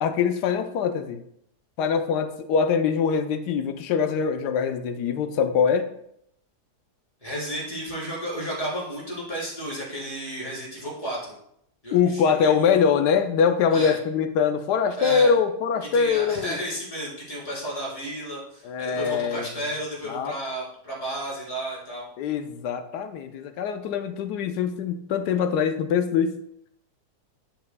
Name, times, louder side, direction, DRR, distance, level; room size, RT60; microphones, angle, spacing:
voice 1, 0.0-1.3 1.8-5.9 11.9-16.6 18.6-19.5 20.1-20.3 22.2-26.4, left 6 dB, 90° left, 8 dB, 1.3 m, -23 dB
voice 2, 7.2-11.3 11.8-12.6 13.7-14.0 15.0-15.3 15.9-22.1, right 1 dB, 20° left, -7 dB, 3.8 m, -32 dB
10.5 x 8.0 x 2.2 m, 0.74 s
omnidirectional pair, 1.7 m